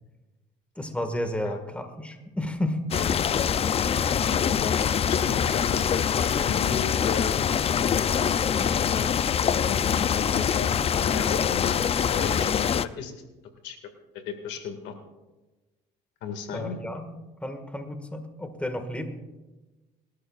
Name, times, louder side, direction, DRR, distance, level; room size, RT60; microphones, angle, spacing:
voice 1, 0.8-2.8 16.5-17.1 17.4-19.1, left 1 dB, 5° left, 7 dB, 1.7 m, -32 dB
sound 1, 2.9-12.9, left 8 dB, 35° left, 0.4 m, -24 dB
voice 2, 4.2-4.8 5.1-7.5 7.8-9.1 9.6-9.9 10.2-11.8 12.1-13.1 13.6-13.8 14.1-14.9 16.2-16.8, left 7 dB, 80° left, 6 dB, 2.0 m, -35 dB
25.5 x 13.0 x 2.4 m, 1.1 s
cardioid pair, 95°, 18 cm